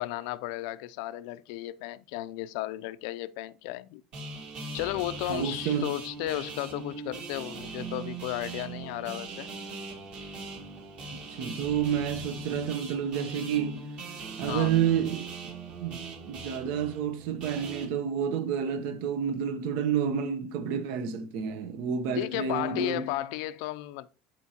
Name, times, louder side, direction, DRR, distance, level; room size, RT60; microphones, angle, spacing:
voice 1, 0.0-4.0 4.7-9.5 14.5-14.7 22.2-24.1, left 16 dB, 75° left, 0.4 m, -34 dB
sound 1, 4.1-17.9, right 3 dB, 40° right, 1.7 m, -40 dB
voice 2, 5.3-5.9 11.1-13.8 14.4-15.3 15.8-23.1, right 8 dB, 65° right, 0.9 m, -29 dB
12.5 x 4.5 x 2.9 m
cardioid pair, 155°, 3 cm